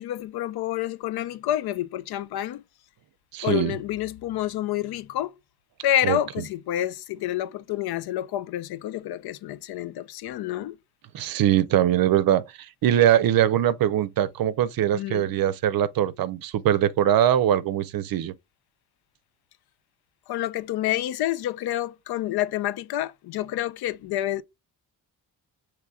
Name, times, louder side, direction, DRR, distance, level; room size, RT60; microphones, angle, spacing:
voice 1, 0.0-2.6 3.4-5.3 5.8-10.7 14.9-15.3 20.3-24.4, left 13 dB, 80° left, 0.5 m, -28 dB
voice 2, 3.3-3.8 6.0-6.2 11.1-12.5 12.8-18.3, right 11 dB, 65° right, 0.5 m, -22 dB
6.1 x 3.1 x 2.3 m
cardioid pair, 105°, 37 cm